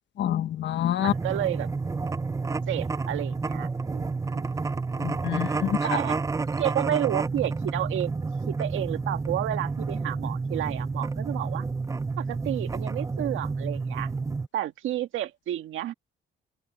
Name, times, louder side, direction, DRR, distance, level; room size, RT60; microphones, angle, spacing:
voice 1, 0.2-1.1 5.0-5.8, left 11 dB, 65° left, 1.1 m, -27 dB
voice 2, 1.0-1.7 2.7-4.4 5.8-6.2 6.6-8.1 8.5-11.7 12.2-14.1 14.5-15.9, right 12 dB, 80° right, 1.8 m, -31 dB
sound 1, 1.1-14.5, right 4 dB, 15° right, 0.4 m, -30 dB
open air
cardioid pair, 90°, 20 cm